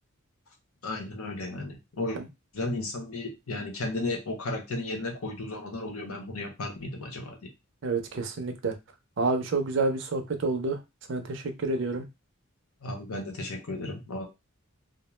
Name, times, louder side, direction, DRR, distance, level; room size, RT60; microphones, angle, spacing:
voice 1, 0.8-2.2 2.5-7.5 12.8-14.3, left 2 dB, 80° left, 2 dB, 0.8 m, -34 dB
voice 2, 7.8-8.7 9.2-10.8 11.1-12.0, right 3 dB, 55° right, 6 dB, 0.5 m, -28 dB
2.4 x 2.1 x 3.1 m, 0.23 s
head